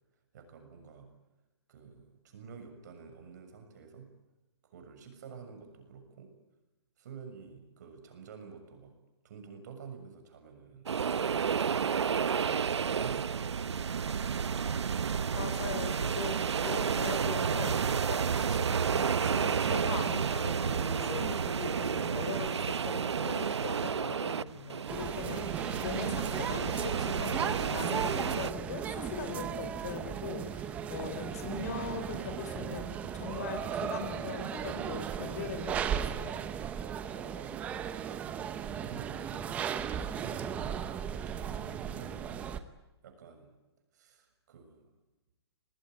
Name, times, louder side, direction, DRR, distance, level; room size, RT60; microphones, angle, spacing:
voice 1, 0.3-1.1 1.7-4.1 4.6-6.3 7.0-9.0 9.2-10.9 12.8-14.3 37.0-38.4 38.7-39.8 40.1-42.5 43.0-43.6 43.9-44.9, right 6 dB, 40° right, 6 dB, 6.9 m, -50 dB
sound 1, 10.9-28.5, right 6 dB, 85° right, 1.1 m, -31 dB
voice 2, 15.3-17.7 18.0-25.4 25.8-36.4, left 4 dB, 40° left, 8 dB, 4.1 m, -40 dB
sound 2, 24.9-42.6, right 8 dB, 10° right, 0.9 m, -36 dB
28.0 x 20.0 x 9.3 m, 1.0 s
hypercardioid pair, 170°, 14 cm